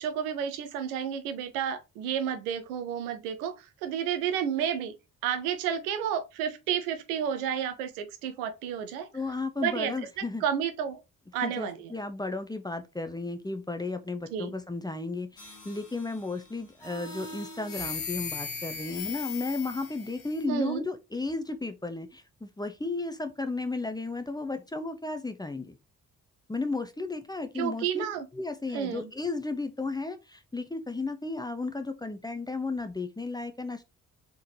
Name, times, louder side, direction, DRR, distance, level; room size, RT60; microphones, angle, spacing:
voice 1, 0.0-4.9 5.2-9.1 9.6-11.0 11.3-11.9 14.3-14.5 20.5-20.8 27.5-28.3 28.7-29.1, right 8 dB, 70° right, 0.7 m, -31 dB
voice 2, 9.1-10.4 11.4-25.8 26.5-28.0 28.3-33.8, left 3 dB, 10° left, 0.7 m, -34 dB
sound 1, 15.4-16.3 16.8-20.4, left 5 dB, 60° left, 1.7 m, -38 dB
4.3 x 3.7 x 2.7 m
figure-of-eight pair, 40°, 45 cm